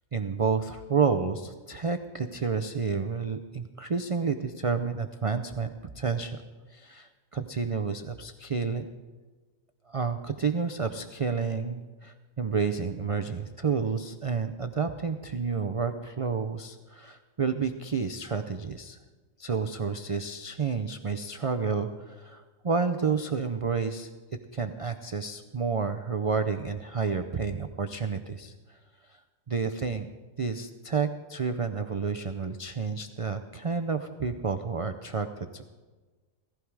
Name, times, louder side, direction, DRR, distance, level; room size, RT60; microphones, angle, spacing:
voice 1, 0.1-6.4 6.7-8.9 9.9-19.0 19.4-24.1 24.5-28.8 29.5-30.1 30.4-35.3 35.5-35.6, right 5 dB, 45° right, 8 dB, 0.4 m, -30 dB
17.0 x 15.0 x 4.7 m, 1.3 s
omnidirectional pair, 1.4 m